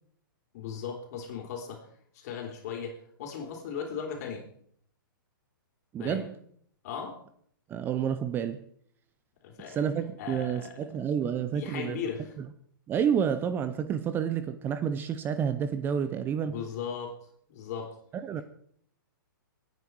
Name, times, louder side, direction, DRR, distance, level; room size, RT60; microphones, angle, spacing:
voice 1, 0.5-1.9 2.1-4.5 6.0-6.3 6.8-7.2 9.4-9.8 10.2-10.8 11.4-12.3 16.4-17.2 17.5-17.9, left 7 dB, 45° left, 3.8 m, -37 dB
voice 2, 5.9-6.4 7.7-8.6 9.7-12.0 12.9-16.5 18.2-18.4, right 8 dB, 20° right, 0.7 m, -29 dB
23.0 x 9.5 x 4.7 m
hypercardioid pair, 145°, 12 cm